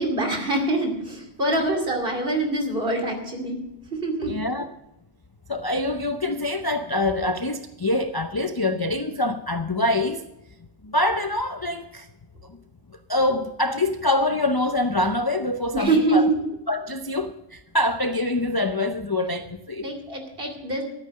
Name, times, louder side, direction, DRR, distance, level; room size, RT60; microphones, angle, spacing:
voice 1, 0.0-3.6 3.9-4.3 15.7-16.4 19.8-20.8, right 2 dB, 40° right, 3 dB, 2.9 m, -24 dB
voice 2, 4.3-4.7 5.5-10.3 10.8-12.1 12.4-12.6 13.1-16.3 16.7-19.9, left 2 dB, 35° left, 8 dB, 0.3 m, -25 dB
13.0 x 9.4 x 6.4 m, 0.89 s
omnidirectional pair, 1.5 m